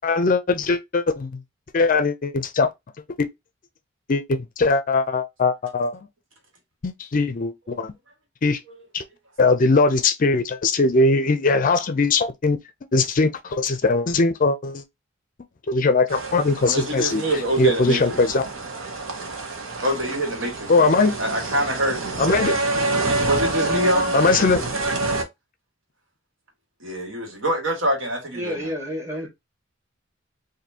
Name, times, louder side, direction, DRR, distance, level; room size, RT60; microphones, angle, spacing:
voice 1, 0.0-1.3 1.7-2.7 4.1-5.9 6.8-7.9 8.4-8.6 8.9-9.0 9.4-12.6 12.9-14.8 15.7-17.2 17.6-18.4 20.7-21.1 22.2-22.6 24.1-24.7, left 3 dB, 45° left, 0.5 m, -20 dB
sound 1, 16.1-25.2, right 2 dB, 90° right, 1.0 m, -27 dB
voice 2, 16.6-18.0 19.8-20.9 21.2-22.3 23.2-24.2 26.8-28.7, right 1 dB, 70° right, 1.7 m, -25 dB
voice 3, 28.3-29.3, equal, 15° right, 1.8 m, -29 dB
4.2 x 2.6 x 2.7 m
head